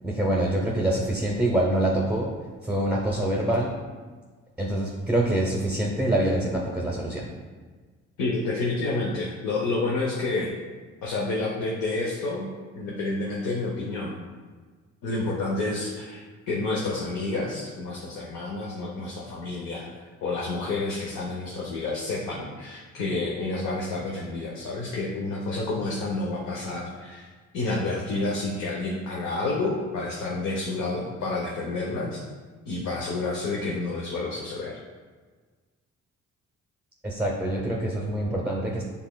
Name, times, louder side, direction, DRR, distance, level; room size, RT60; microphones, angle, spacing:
voice 1, 0.0-2.3 2.6-3.7 4.6-7.3 37.0-38.8, right 1 dB, 5° right, -2 dB, 0.7 m, -25 dB
voice 2, 8.2-10.5 11.0-12.5 12.7-14.2 15.0-19.9 20.2-27.3 27.5-32.2 32.7-34.8, left 2 dB, 75° left, -4 dB, 0.8 m, -29 dB
6.7 x 3.5 x 2.3 m, 1.4 s
cardioid pair, 90°, 30 cm